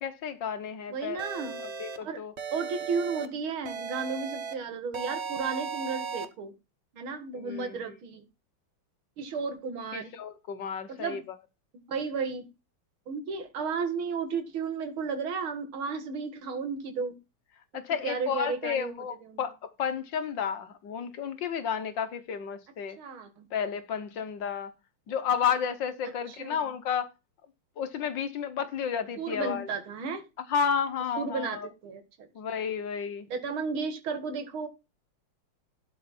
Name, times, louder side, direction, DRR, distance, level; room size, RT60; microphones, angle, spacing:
voice 1, 0.0-1.2 1.6-2.3 7.3-7.8 9.9-11.2 17.7-23.0 23.5-24.7 25.1-27.1 27.8-29.7 30.5-31.7 32.3-33.3, left 7 dB, 65° left, 1.5 m, -32 dB
voice 2, 0.9-1.6 2.0-2.2 2.5-6.5 6.9-8.3 9.2-10.1 10.9-11.2 11.9-12.5 13.1-17.1 18.0-18.9 19.3-19.4 23.0-23.5 26.0-26.6 29.2-30.3 31.2-32.3 33.3-34.7, right 5 dB, 70° right, 2.5 m, -33 dB
sound 1, 1.2-2.0 2.4-3.3 3.7-4.5 4.9-6.3, right 6 dB, 40° right, 1.1 m, -36 dB
12.0 x 5.5 x 4.3 m
omnidirectional pair, 2.4 m